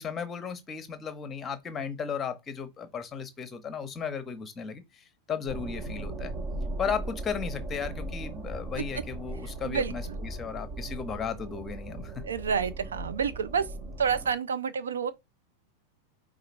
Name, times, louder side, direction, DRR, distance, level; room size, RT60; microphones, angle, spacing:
voice 1, 0.0-6.3 6.8-12.2, left 6 dB, 20° left, 0.9 m, -35 dB
sound 1, 5.5-14.3, right 2 dB, 35° right, 1.0 m, -38 dB
voice 2, 9.6-10.2 12.2-13.7 14.0-15.1, right 6 dB, 65° right, 0.5 m, -29 dB
4.9 x 2.4 x 4.4 m
figure-of-eight pair, 90°, 0 cm